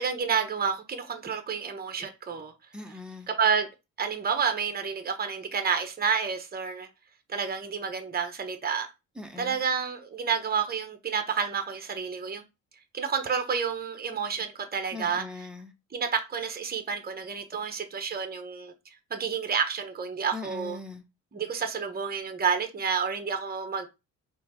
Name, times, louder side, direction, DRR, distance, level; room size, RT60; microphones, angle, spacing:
voice 1, 0.0-2.5 3.3-3.7 4.0-6.9 7.3-8.9 9.4-12.4 12.9-15.2 15.9-18.7 19.1-20.8 21.3-23.9, right 6 dB, 30° right, 1.1 m, -29 dB
voice 2, 2.7-3.3 9.2-9.6 14.9-15.7 20.3-21.0, left 3 dB, 5° right, 1.1 m, -40 dB
4.3 x 3.2 x 3.8 m
cardioid pair, 90°, 30 cm